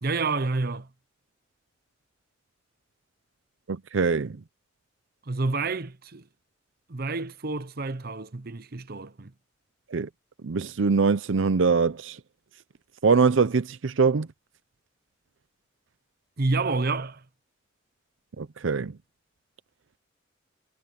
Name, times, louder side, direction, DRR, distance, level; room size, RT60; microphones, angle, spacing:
voice 1, 0.0-0.9 5.3-6.3 6.9-9.3 16.4-17.2, right 3 dB, 50° right, 0.9 m, -29 dB
voice 2, 3.7-4.4 9.9-10.1 10.4-12.2 13.0-14.3 18.4-18.9, right 5 dB, 75° right, 0.6 m, -23 dB
head